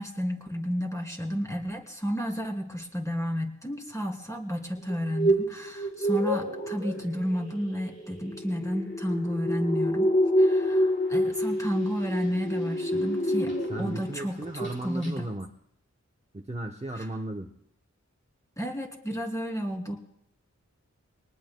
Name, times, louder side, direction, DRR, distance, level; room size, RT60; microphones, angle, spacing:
voice 1, 0.0-10.1 10.4-15.3 16.9-17.1 18.6-20.0, equal, 10° left, 1 dB, 2.9 m, -31 dB
sound 1, 4.9-14.1 14.4-14.8 15.0-15.1, equal, 40° left, 4.2 m, -28 dB
voice 2, 13.7-15.5 16.3-17.5, right 1 dB, 20° right, 2 dB, 1.0 m, -35 dB
23.5 x 19.0 x 2.3 m, 0.71 s
wide cardioid pair, 40°, 30 cm